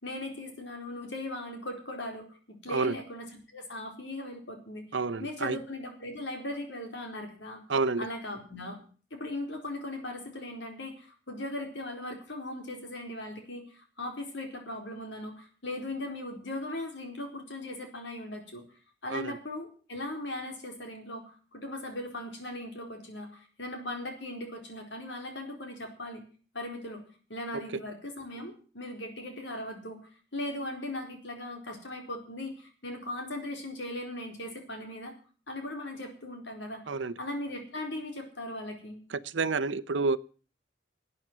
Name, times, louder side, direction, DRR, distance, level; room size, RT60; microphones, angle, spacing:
voice 1, 0.0-7.6 8.0-8.8 9.1-18.6 19.0-26.2 26.5-27.0 27.3-30.0 30.3-35.1 35.5-39.0, left 1 dB, 80° left, 4 dB, 4.4 m, -39 dB
voice 2, 4.9-5.6 7.7-8.0 19.1-19.4 36.9-37.1 39.3-40.2, right 4 dB, 85° right, 15 dB, 0.8 m, -28 dB
12.5 x 8.8 x 9.2 m, 0.40 s
head